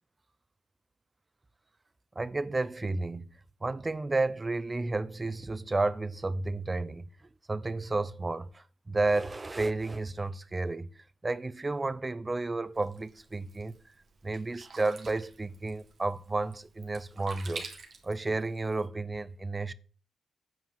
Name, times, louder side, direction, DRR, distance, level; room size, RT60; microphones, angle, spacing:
voice 1, 2.2-3.3 3.6-7.1 7.5-10.9 11.2-13.8 14.2-17.7 18.0-19.7, right 2 dB, 30° right, 0.7 m, -32 dB
Sink (filling or washing), 12.7-18.9, right 4 dB, 60° right, 2.0 m, -48 dB
9.0 x 4.8 x 7.6 m
supercardioid pair, 50°, 0 cm